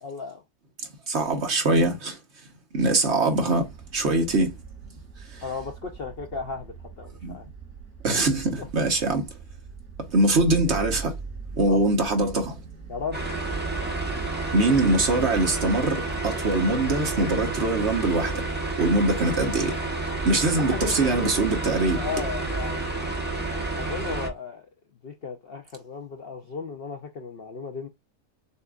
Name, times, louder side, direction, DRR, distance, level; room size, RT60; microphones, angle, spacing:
voice 1, 0.0-0.4 5.4-7.4 8.6-8.7 11.6-11.8 12.9-13.2 20.5-21.3 22.0-22.8 23.8-24.7 25.0-27.9, left 5 dB, 55° left, 0.7 m, -35 dB
voice 2, 1.1-2.2 2.7-3.7 3.9-4.5 5.3-5.4 7.2-7.4 8.0-9.3 10.1-11.1 11.6-12.6 14.5-18.4 18.8-19.7 20.2-22.0, right 2 dB, 50° right, 1.2 m, -23 dB
sound 1, 3.6-16.2, right 5 dB, 80° right, 2.8 m, -41 dB
sound 2, 13.1-24.3, right 2 dB, 10° right, 0.9 m, -30 dB
6.8 x 2.5 x 2.3 m
omnidirectional pair, 1.6 m